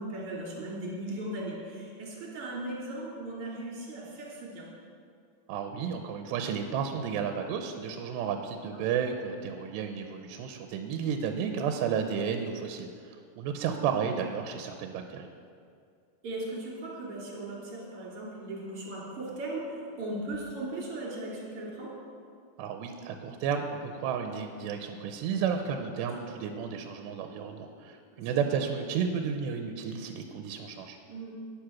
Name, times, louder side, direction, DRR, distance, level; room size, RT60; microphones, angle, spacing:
voice 1, 0.0-4.7 13.6-13.9 16.2-21.9 26.2-26.3 28.1-28.3 31.1-31.3, right 1 dB, 35° right, -5 dB, 3.5 m, -38 dB
voice 2, 5.5-15.3 22.6-31.0, right 7 dB, 85° right, 5 dB, 2.8 m, -32 dB
11.5 x 9.3 x 5.9 m, 2.3 s
omnidirectional pair, 4.9 m